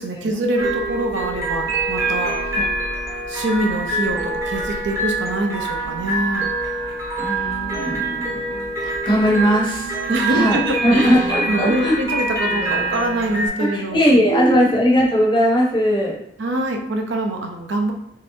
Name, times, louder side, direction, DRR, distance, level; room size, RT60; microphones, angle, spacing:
voice 1, 0.0-2.6 3.3-6.5 10.1-14.8 16.4-17.9, right 1 dB, 65° right, 3 dB, 0.5 m, -24 dB
sound 1, 0.6-13.5, right 2 dB, 15° right, 0.7 m, -25 dB
voice 2, 7.2-9.9 10.3-12.0 13.6-16.2, equal, 25° left, -3 dB, 0.7 m, -19 dB
3.1 x 2.8 x 2.6 m, 0.77 s
head